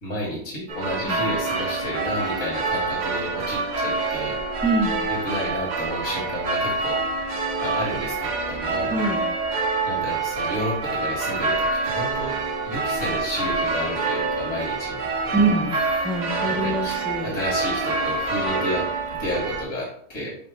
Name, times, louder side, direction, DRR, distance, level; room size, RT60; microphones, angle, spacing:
voice 1, 0.0-4.4 5.1-7.0 7.6-9.0 9.9-15.4 16.5-17.0 17.2-20.3, left 1 dB, 80° left, -5 dB, 1.7 m, -31 dB
sound 1, 0.7-19.6, right 3 dB, 45° right, 0.6 m, -26 dB
voice 2, 4.6-5.0 8.9-9.2 15.3-15.7 16.0-17.3, right 2 dB, ahead, 1 dB, 0.3 m, -24 dB
5.1 x 2.1 x 4.7 m, 0.63 s
omnidirectional pair, 1.3 m